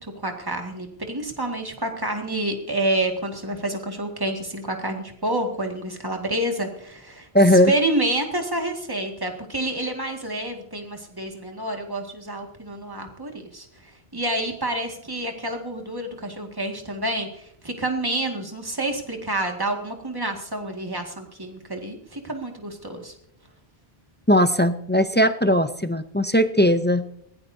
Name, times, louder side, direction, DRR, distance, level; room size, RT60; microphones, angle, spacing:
voice 1, 0.0-7.3 7.7-13.7 14.1-23.1, right 1 dB, 20° right, 3 dB, 2.0 m, -28 dB
voice 2, 7.3-7.7 24.3-27.2, equal, 15° left, 10 dB, 0.4 m, -18 dB
21.0 x 16.5 x 2.7 m, 0.69 s
omnidirectional pair, 1.1 m